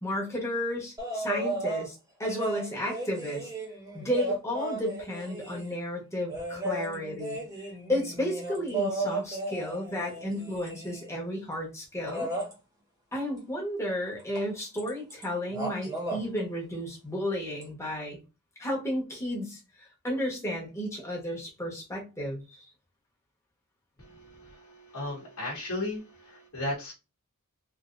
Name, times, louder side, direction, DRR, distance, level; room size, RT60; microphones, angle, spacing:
voice 1, 0.0-3.5 3.9-7.4 7.9-12.3 13.1-18.2 18.6-22.4, equal, 15° left, -2 dB, 1.2 m, -33 dB
sound 1, 1.0-1.9 2.2-5.8 6.3-11.1 12.0-12.5 14.3-14.5 14.8-15.2 15.5-16.2 17.6-17.7, right 1 dB, 15° right, 1.0 m, -34 dB
voice 2, 24.0-26.9, left 1 dB, 80° left, -3 dB, 1.2 m, -36 dB
3.4 x 2.8 x 2.5 m, 0.28 s
head